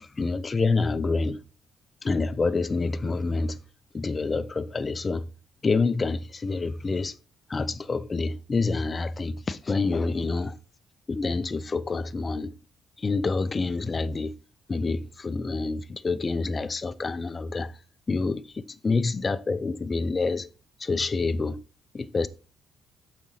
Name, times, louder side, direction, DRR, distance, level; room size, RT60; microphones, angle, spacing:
voice 1, 0.0-1.4 2.0-3.6 3.9-5.3 5.6-7.2 7.5-10.6 11.1-12.5 13.0-14.3 14.7-17.7 18.1-20.5 20.8-21.6 21.9-22.3, left 3 dB, 30° left, 0.5 m, -27 dB
7.1 x 5.2 x 3.9 m
cardioid pair, 90°, 0 cm